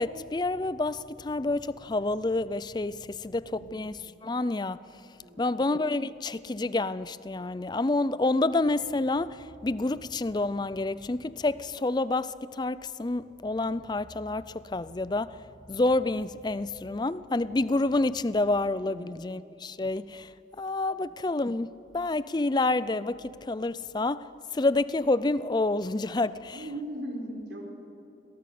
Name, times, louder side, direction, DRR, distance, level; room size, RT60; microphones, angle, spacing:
voice 1, 0.0-3.9 4.2-4.9 5.4-15.4 15.7-20.3 20.6-26.6, left 2 dB, 25° left, 0.4 m, -28 dB
voice 2, 5.2-5.6 18.8-19.2 20.9-21.3 26.5-27.7, right 1 dB, 75° right, 4.2 m, -39 dB
22.5 x 17.5 x 6.8 m
head